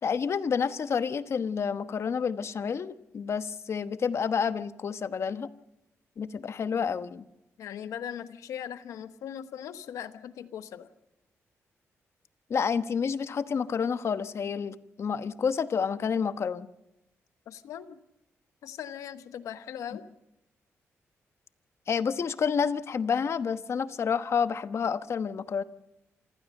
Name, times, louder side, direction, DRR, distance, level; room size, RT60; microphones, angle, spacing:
voice 1, 0.0-5.5 6.2-7.3 12.5-16.7 21.9-25.6, left 6 dB, 60° left, 11 dB, 1.1 m, -29 dB
voice 2, 7.6-10.9 17.5-18.0 18.6-20.1, left 9 dB, 90° left, 10 dB, 1.1 m, -39 dB
27.5 x 15.5 x 6.6 m, 0.89 s
cardioid pair, 75°, 5 cm